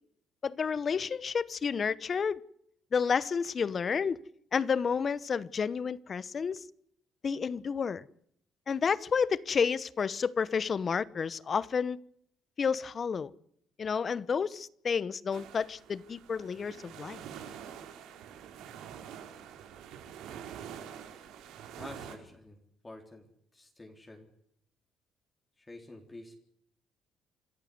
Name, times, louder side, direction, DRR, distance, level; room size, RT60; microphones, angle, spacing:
voice 1, 0.4-2.4 2.9-4.2 4.5-6.6 7.2-8.0 8.7-12.0 12.6-13.3 13.8-17.2, left 6 dB, 40° left, 1.0 m, -30 dB
sound 1, 15.3-22.1, right 8 dB, 85° right, 4.4 m, -46 dB
voice 2, 21.8-22.6 22.8-23.3 23.5-24.3 25.6-26.3, left 2 dB, 20° left, 3.8 m, -48 dB
27.0 x 14.0 x 9.5 m
cardioid pair, 100°, 0 cm